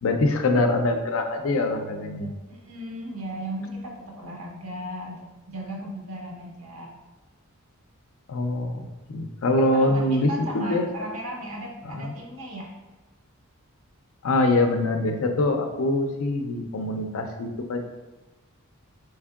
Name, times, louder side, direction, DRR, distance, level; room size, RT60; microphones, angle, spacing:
voice 1, 0.0-2.3 8.3-10.3 10.5-11.1 11.9-12.1 14.2-17.9, left 2 dB, 70° left, 5 dB, 0.5 m, -24 dB
voice 2, 2.5-6.9 9.6-12.7, right 1 dB, 70° right, 0 dB, 0.8 m, -36 dB
4.3 x 3.2 x 2.3 m, 1.1 s
head